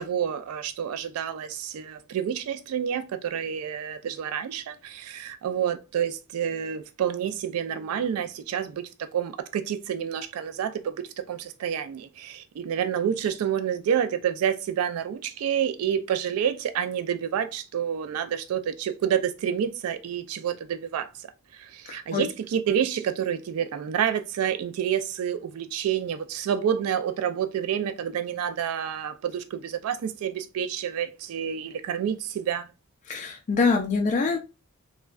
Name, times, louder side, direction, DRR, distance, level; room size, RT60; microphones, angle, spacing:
voice 1, 0.0-32.7, right 8 dB, 70° right, 0.3 m, -29 dB
voice 2, 21.9-22.2 33.1-34.4, left 4 dB, 35° left, 0.3 m, -24 dB
3.4 x 2.1 x 2.2 m
head